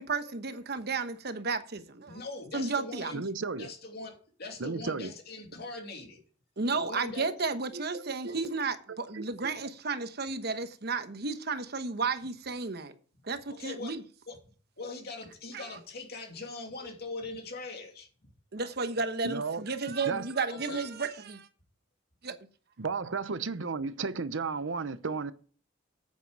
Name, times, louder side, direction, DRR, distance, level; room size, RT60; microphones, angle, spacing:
voice 1, 0.0-2.2 2.5-3.2 6.6-12.9 13.2-14.0 15.5-15.7 18.5-21.5 22.2-22.4, right 4 dB, 55° right, 1.1 m, -33 dB
voice 2, 2.1-3.2 3.6-6.2 6.7-7.5 8.3-8.5 13.5-14.0 14.3-14.4 14.8-18.3 20.5-20.8, left 3 dB, 55° left, 2.7 m, -42 dB
voice 3, 3.1-3.7 4.6-5.1 7.7-8.5 8.9-9.3 19.2-19.6 20.0-20.3 22.8-25.3, right 4 dB, 80° right, 0.8 m, -34 dB
9.3 x 8.7 x 4.7 m
head